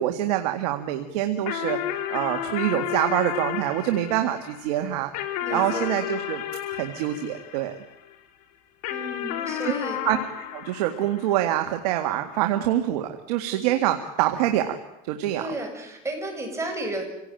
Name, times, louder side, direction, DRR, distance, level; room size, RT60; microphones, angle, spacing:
voice 1, 0.0-1.8 2.1-5.1 5.5-6.4 6.7-7.8 10.0-10.2 10.5-14.7 15.0-15.4, right 13 dB, 90° right, 5 dB, 2.0 m, -25 dB
sound 1, 1.5-8.2 8.8-11.6, left 11 dB, 85° left, 2.9 m, -32 dB
voice 2, 5.4-6.0 8.9-10.0 15.4-17.0, right 1 dB, 15° right, 3 dB, 7.5 m, -33 dB
27.5 x 17.5 x 9.1 m, 0.89 s
supercardioid pair, 115°, 19 cm